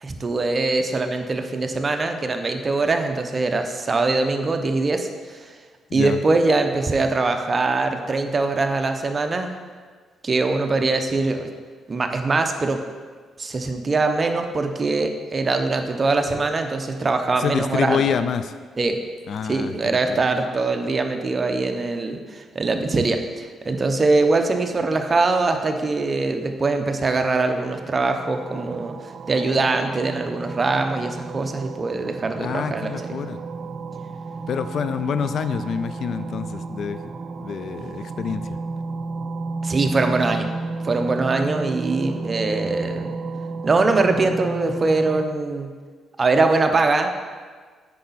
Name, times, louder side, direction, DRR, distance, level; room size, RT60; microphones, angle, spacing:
voice 1, 0.0-5.6 5.9-9.5 10.2-11.5 11.9-12.8 13.4-18.2 18.8-19.0 19.4-33.1 39.6-40.5 40.8-43.1 43.6-45.7 46.2-47.1, right 3 dB, 35° right, 6 dB, 0.7 m, -22 dB
voice 2, 17.4-18.5 19.3-20.2 32.4-33.4 34.5-37.0 37.4-38.5, left 7 dB, 60° left, 11 dB, 0.4 m, -27 dB
sound 1, 27.6-45.3, right 3 dB, 50° right, 0.3 m, -32 dB
8.4 x 5.6 x 4.1 m, 1.5 s
cardioid pair, 90°, 0 cm